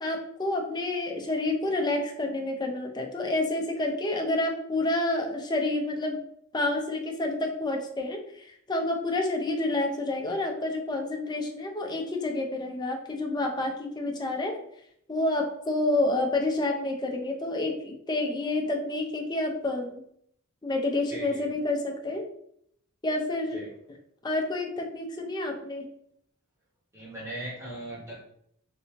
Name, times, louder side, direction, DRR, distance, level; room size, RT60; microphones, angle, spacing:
voice 1, 0.0-6.2 6.5-14.6 15.1-20.0 20.6-22.2 23.0-23.7 24.2-25.8, left 2 dB, 20° left, 2 dB, 0.5 m, -29 dB
voice 2, 21.1-21.5 23.5-23.7 26.9-28.2, right 1 dB, 15° right, -5 dB, 1.0 m, -39 dB
3.4 x 2.7 x 2.9 m, 0.69 s
head